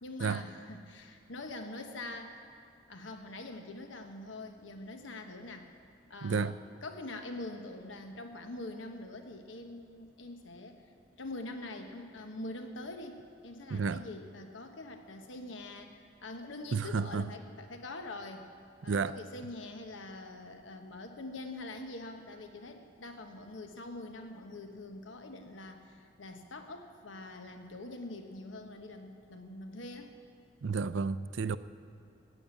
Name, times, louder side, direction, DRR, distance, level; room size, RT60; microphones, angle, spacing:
voice 1, 0.0-2.4 2.9-5.7 6.1-6.5 6.8-10.9 11.1-18.5 18.8-30.1, left 2 dB, 85° left, 1.2 m, -44 dB
voice 2, 6.2-6.6 13.7-14.0 16.7-17.3 18.8-19.2 30.6-31.6, right 5 dB, 75° right, 0.5 m, -31 dB
14.5 x 9.3 x 8.5 m
head